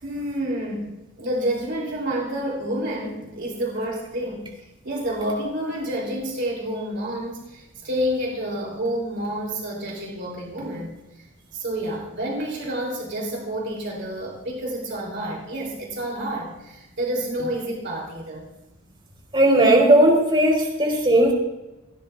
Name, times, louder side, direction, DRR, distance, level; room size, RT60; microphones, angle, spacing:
voice 1, 0.0-11.2 11.5-18.5, right 1 dB, 55° right, -1 dB, 2.9 m, -29 dB
voice 2, 19.3-21.3, right 1 dB, 25° right, 0 dB, 3.8 m, -16 dB
29.0 x 11.5 x 2.3 m, 0.99 s
head